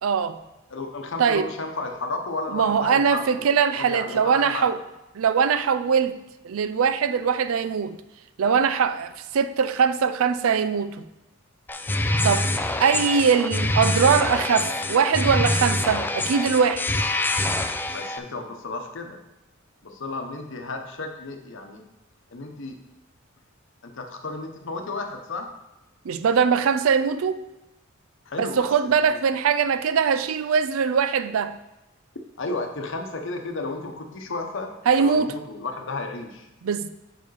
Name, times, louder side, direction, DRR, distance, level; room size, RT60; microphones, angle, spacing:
voice 1, 0.0-0.4 1.2-1.5 2.5-4.8 5.2-6.2 6.4-8.0 8.4-11.0 12.2-12.5 12.8-16.8 26.0-27.4 28.4-31.5 34.9-35.3 36.6-36.9, right 6 dB, 85° right, 0.4 m, -21 dB
voice 2, 0.7-4.7 17.9-19.2 19.8-21.8 22.3-22.8 23.8-25.5 28.3-29.2 32.4-34.7 35.0-36.5, left 3 dB, 65° left, 0.9 m, -33 dB
sound 1, 11.7-18.2, left 2 dB, 10° left, 0.3 m, -25 dB
6.7 x 4.7 x 4.8 m
head